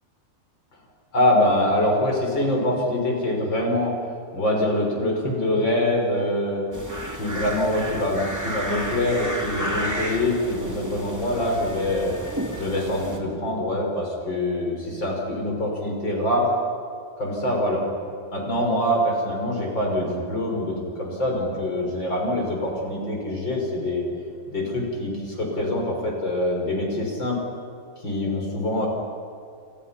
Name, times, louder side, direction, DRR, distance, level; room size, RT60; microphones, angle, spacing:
voice 1, 1.1-4.0 4.3-6.6 7.1-12.2 12.6-16.5 17.2-17.8 18.3-24.0 24.5-27.4 28.0-28.9, left 1 dB, 80° left, 0 dB, 6.7 m, -24 dB
sound 1, 6.7-13.2, equal, 10° right, 2.5 m, -32 dB
29.5 x 29.0 x 5.8 m, 2.3 s
omnidirectional pair, 2.0 m